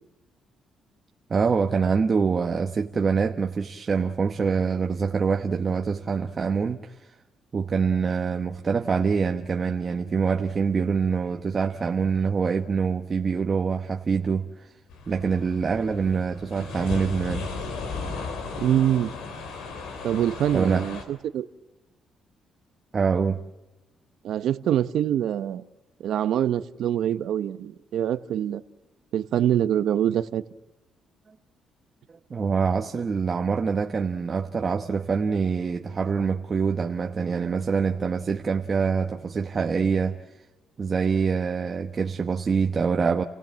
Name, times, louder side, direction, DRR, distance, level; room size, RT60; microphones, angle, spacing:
voice 1, 1.3-7.2 7.5-14.7 15.1-17.5 20.5-20.9 22.9-23.4 32.3-40.4 40.8-43.2, right 5 dB, 40° right, 1.1 m, -25 dB
sound 1, 14.9-21.0, left 4 dB, 90° left, 3.9 m, -35 dB
voice 2, 18.6-19.1 20.0-21.5 24.2-25.6 26.0-28.6 29.1-30.4, right 10 dB, 75° right, 0.9 m, -24 dB
29.5 x 16.5 x 7.5 m
cardioid pair, 90°, 0 cm